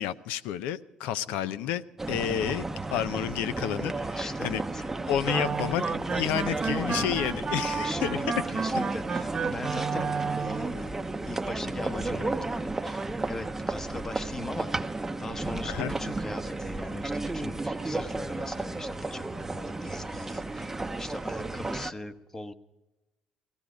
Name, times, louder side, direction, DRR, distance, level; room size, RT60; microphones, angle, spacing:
voice 1, 0.0-4.6 5.0-8.1 8.5-8.8 15.6-15.9, left 11 dB, 85° left, 14 dB, 0.6 m, -31 dB
voice 2, 1.3-1.7 3.9-4.8 7.6-10.9 11.3-22.5, left 2 dB, 20° left, 9 dB, 1.0 m, -40 dB
sound 1, 2.0-21.9, right 2 dB, 15° right, 0.7 m, -33 dB
sound 2, 5.2-10.8, right 5 dB, 35° right, 1.0 m, -32 dB
16.5 x 15.5 x 5.0 m, 1.1 s
cardioid pair, 95°, 2 cm